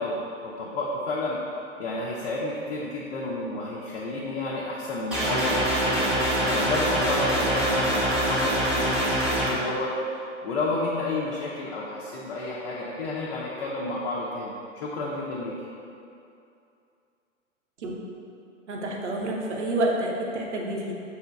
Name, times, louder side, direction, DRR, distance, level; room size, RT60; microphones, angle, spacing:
voice 1, 0.0-1.4 1.8-5.6 5.9-6.1 6.4-9.9 10.4-15.5, left 2 dB, 50° left, -5 dB, 0.5 m, -31 dB
sound 1, 5.1-9.5, right 1 dB, ahead, 0.4 m, -24 dB
voice 2, 18.7-20.9, right 1 dB, 65° right, -1 dB, 0.7 m, -28 dB
5.4 x 2.9 x 2.3 m, 2.6 s
figure-of-eight pair, 105°, 38 cm